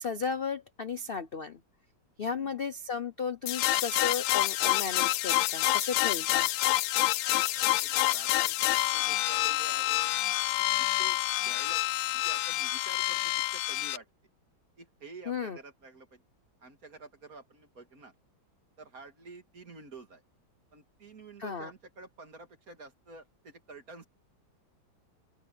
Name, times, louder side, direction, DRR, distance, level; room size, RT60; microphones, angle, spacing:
voice 1, 0.0-1.6 2.2-6.5 15.3-15.6 21.4-21.7, left 5 dB, 55° left, 0.6 m, -34 dB
sound 1, 3.5-14.0, left 17 dB, 80° left, 1.3 m, -28 dB
voice 2, 7.4-10.2 10.6-11.2 11.4-11.8 12.1-14.1 14.8-16.2 16.6-18.1 18.8-20.2 20.7-24.1, right 3 dB, 45° right, 2.7 m, -49 dB
open air
omnidirectional pair, 2.2 m